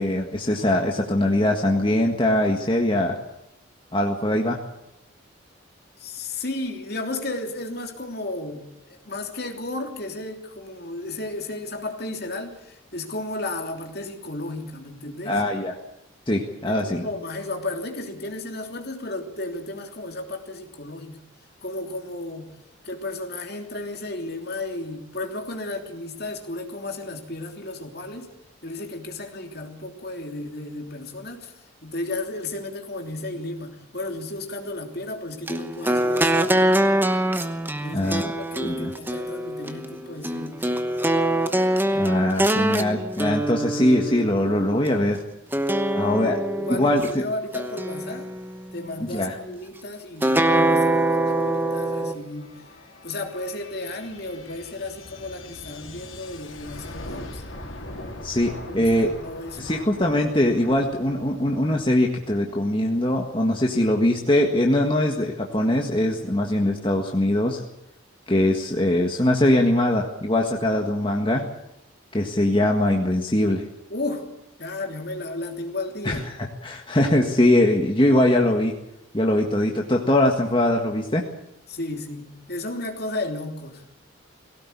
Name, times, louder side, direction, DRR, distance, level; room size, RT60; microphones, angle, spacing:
voice 1, 0.0-3.2 3.9-4.6 15.2-15.7 16.3-17.0 37.9-38.3 38.6-38.9 41.9-45.2 45.9-46.4 46.7-47.2 49.0-49.3 58.2-59.1 59.6-67.6 68.3-71.4 72.1-73.6 76.0-76.2 76.6-78.7 79.1-81.2, left 1 dB, 25° left, 1 dB, 1.7 m, -22 dB
voice 2, 6.0-15.4 16.6-21.2 21.6-22.5 22.8-28.3 28.6-36.5 37.8-40.7 46.3-48.3 48.7-52.7 53.0-57.4 58.7-59.8 73.9-74.3 74.6-76.3 81.7-83.8, left 2 dB, 50° left, 3 dB, 3.2 m, -33 dB
sound 1, 35.5-44.9 45.5-47.1 47.5-48.7 50.2-52.1, right 1 dB, 10° right, 1.0 m, -24 dB
sound 2, 51.1-64.0, left 1 dB, 70° left, 4.0 m, -42 dB
20.0 x 17.5 x 8.5 m, 0.84 s
head